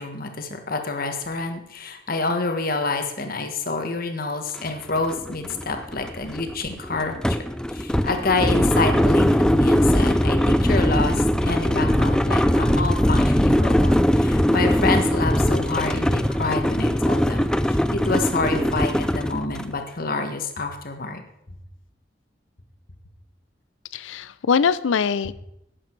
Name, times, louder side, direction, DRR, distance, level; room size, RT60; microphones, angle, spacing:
voice 1, 0.0-21.2, left 3 dB, 50° left, 5 dB, 1.4 m, -28 dB
sound 1, 4.6-4.7 5.0-19.7, equal, 5° left, 0.3 m, -21 dB
voice 2, 23.9-25.3, left 6 dB, 85° left, 18 dB, 0.5 m, -22 dB
11.5 x 8.6 x 4.6 m, 0.80 s
head